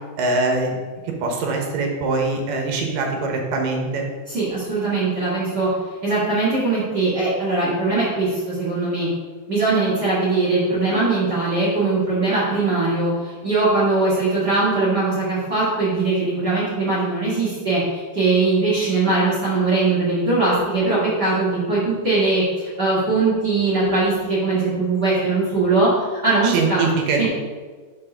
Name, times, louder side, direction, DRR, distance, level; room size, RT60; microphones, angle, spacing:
voice 1, 0.2-0.8 1.2-4.1 26.4-27.3, right 3 dB, 70° right, 2 dB, 2.3 m, -22 dB
voice 2, 4.3-5.7 6.0-9.1 9.5-25.9 26.2-26.9 27.2-27.3, right 3 dB, 45° right, -9 dB, 1.4 m, -21 dB
5.8 x 4.7 x 5.4 m, 1.5 s
omnidirectional pair, 4.4 m